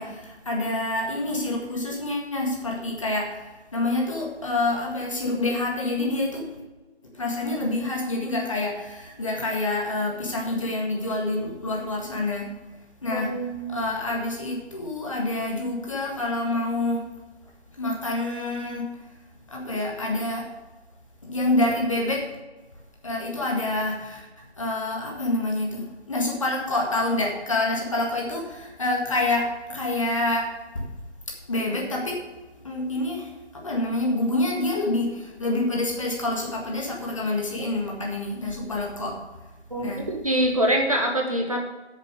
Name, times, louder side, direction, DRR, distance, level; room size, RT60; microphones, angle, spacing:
voice 1, 0.0-6.5 7.1-12.5 13.0-13.4 13.7-17.1 17.8-19.1 19.5-20.5 21.2-22.3 23.0-24.2 24.6-30.8 31.5-32.2 32.6-39.2 39.8-40.1, left 2 dB, 30° left, -1 dB, 1.8 m, -27 dB
voice 2, 13.1-13.8 39.7-41.6, right 1 dB, 30° right, 1 dB, 1.0 m, -25 dB
8.7 x 6.6 x 6.4 m, 1.2 s
figure-of-eight pair, 170°, 34 cm